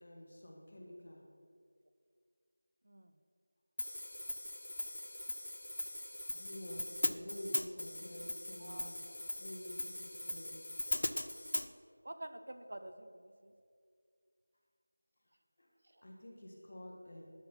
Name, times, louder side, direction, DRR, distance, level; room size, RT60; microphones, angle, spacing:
voice 1, 0.0-1.2 6.3-9.0 9.4-10.8 15.6-15.7 16.0-17.2, left 1 dB, 40° left, -1 dB, 1.5 m, -49 dB
Hi-hat, 3.8-11.7, left 1 dB, 70° left, 0.4 m, -40 dB
voice 2, 8.6-9.2 12.0-13.5 15.8-16.0, right 1 dB, 50° right, 9 dB, 0.5 m, -49 dB
12.0 x 4.1 x 5.6 m, 2.3 s
figure-of-eight pair, 180°, 0 cm